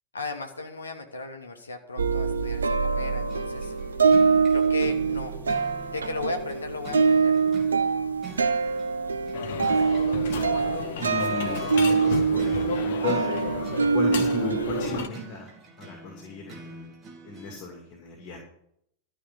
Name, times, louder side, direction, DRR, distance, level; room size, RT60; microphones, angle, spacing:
voice 1, 0.1-3.7 4.5-5.3 5.9-7.4, left 3 dB, 75° left, 5 dB, 1.2 m, -36 dB
sound 1, 2.0-15.1, right 5 dB, 75° right, 0.7 m, -24 dB
sound 2, 2.9-17.6, right 3 dB, 25° right, 2.5 m, -44 dB
sound 3, 9.3-15.1, left 7 dB, 55° left, 1.1 m, -33 dB
voice 2, 9.5-9.9 11.0-13.2 13.9-15.5 15.8-16.9 17.2-18.4, left 3 dB, 40° left, 1 dB, 2.5 m, -34 dB
12.5 x 5.1 x 8.2 m, 0.72 s
figure-of-eight pair, 90°, 0 cm